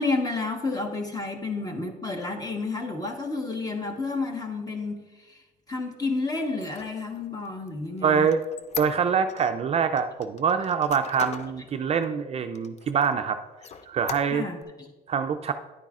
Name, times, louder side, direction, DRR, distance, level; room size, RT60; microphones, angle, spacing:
voice 1, 0.0-5.4 5.7-8.3 14.3-14.9, left 3 dB, 20° left, 4 dB, 1.2 m, -30 dB
Squeak, 6.5-9.5 10.0-11.6 12.0-12.1 12.5-13.2 13.6-14.6, left 6 dB, 40° left, 0.5 m, -39 dB
voice 2, 8.0-8.4 8.8-13.4 13.9-14.4 15.1-15.5, right 6 dB, 40° right, 8 dB, 0.4 m, -24 dB
10.0 x 8.8 x 2.4 m, 1.2 s
cardioid pair, 110°, 17 cm